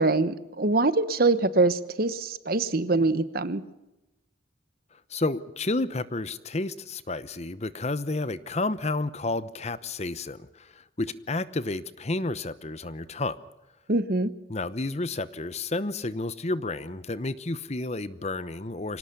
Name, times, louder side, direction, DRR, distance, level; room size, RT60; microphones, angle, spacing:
voice 1, 0.0-3.6 13.9-14.3, right 3 dB, 50° right, 14 dB, 1.1 m, -24 dB
voice 2, 5.1-13.4 14.5-19.0, left 2 dB, 35° left, 15 dB, 0.9 m, -31 dB
25.5 x 18.0 x 6.9 m, 0.97 s
head